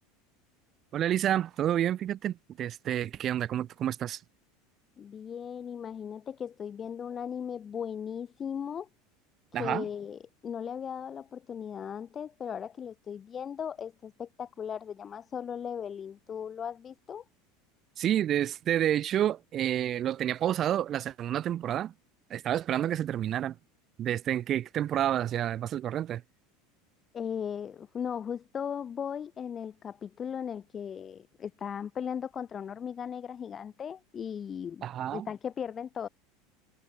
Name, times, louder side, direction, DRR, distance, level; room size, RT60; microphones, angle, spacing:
voice 1, 0.9-4.2 9.5-9.8 18.0-21.9 22.3-23.5 24.0-26.2 34.8-35.3, right 11 dB, 35° right, 0.6 m, -29 dB
voice 2, 5.0-8.9 9.6-17.2 27.1-34.8 35.1-36.1, left 8 dB, 25° left, 6.2 m, -37 dB
supercardioid pair, 145°, 0 cm